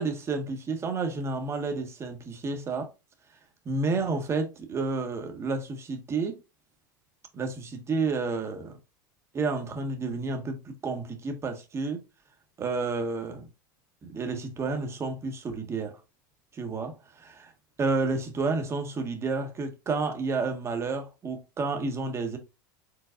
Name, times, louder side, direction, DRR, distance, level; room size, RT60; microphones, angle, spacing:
voice 1, 0.0-2.9 3.6-6.4 7.3-8.8 9.3-12.0 12.6-13.5 14.1-16.0 16.5-17.5 17.8-22.4, right 3 dB, 25° right, 1.4 m, -30 dB
5.0 x 3.8 x 2.5 m
supercardioid pair, 115°, 11 cm